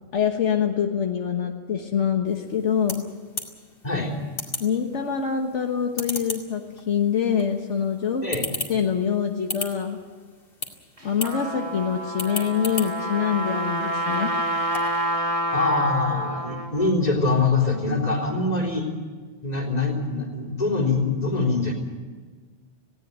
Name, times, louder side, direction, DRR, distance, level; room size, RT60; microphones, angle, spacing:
voice 1, 0.1-3.0 4.6-8.2 8.7-10.0 11.0-14.3, left 7 dB, 75° left, 3 dB, 1.6 m, -25 dB
sound 1, 2.3-15.1, left 3 dB, 50° left, 2.5 m, -38 dB
Trumpet, 11.0-16.9, right 1 dB, 30° right, 1.7 m, -28 dB
voice 2, 15.5-18.9 19.4-21.7, left 3 dB, 35° left, 0 dB, 3.8 m, -24 dB
18.5 x 17.0 x 9.4 m, 1.5 s
omnidirectional pair, 1.2 m